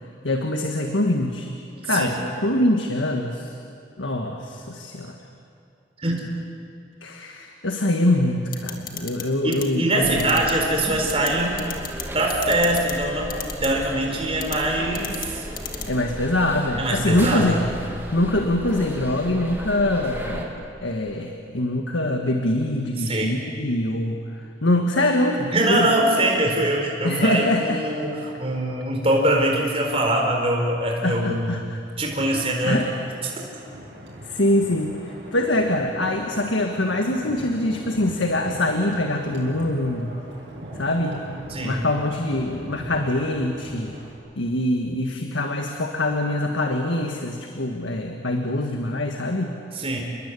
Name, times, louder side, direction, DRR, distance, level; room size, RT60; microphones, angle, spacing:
voice 1, 0.2-1.5 1.8-3.6 4.0-5.2 7.0-10.2 15.9-17.6 18.1-24.2 24.6-25.9 27.0-27.8 31.0-31.8 32.6-32.9 34.3-40.2 40.8-41.2 41.6-43.9 44.4-49.6, left 1 dB, 90° left, 3 dB, 1.7 m, -24 dB
sound 1, 8.5-9.2 9.5-9.6 10.2-10.5 11.1-11.3 11.6-12.0 12.3-12.9 13.3-13.7 14.4-14.6 14.9-15.3 15.6-15.8, left 11 dB, 50° left, 2.3 m, -32 dB
voice 2, 9.4-11.6 12.1-13.3 13.6-15.4 16.8-17.7 23.0-23.3 25.5-31.5 32.0-32.8 33.2-33.3 41.5-41.8 49.7-50.0, right 1 dB, 30° right, 0 dB, 4.5 m, -23 dB
sound 2, 10.0-20.5, equal, 10° right, 2.4 m, -35 dB
Wind, 32.3-44.1, equal, 65° right, 7.4 m, -40 dB
29.0 x 21.5 x 8.5 m, 2.5 s
head